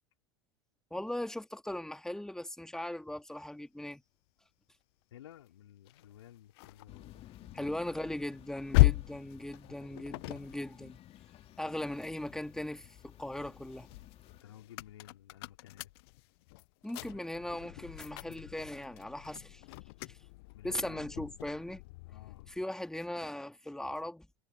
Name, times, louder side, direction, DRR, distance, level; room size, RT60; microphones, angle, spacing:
voice 1, 0.9-4.0 7.5-11.0 11.6-13.9 16.8-19.6 20.0-20.2 20.6-21.8 22.5-24.3, left 1 dB, 5° left, 2.4 m, -39 dB
voice 2, 5.1-7.7 14.3-15.9 20.5-21.1 22.1-22.5, left 12 dB, 70° left, 3.2 m, -54 dB
sound 1, 5.9-12.4 12.8-22.6, left 23 dB, 55° left, 0.4 m, -36 dB
sound 2, 6.9-14.4, left 13 dB, 40° left, 2.6 m, -55 dB
figure-of-eight pair, 80°, 15 cm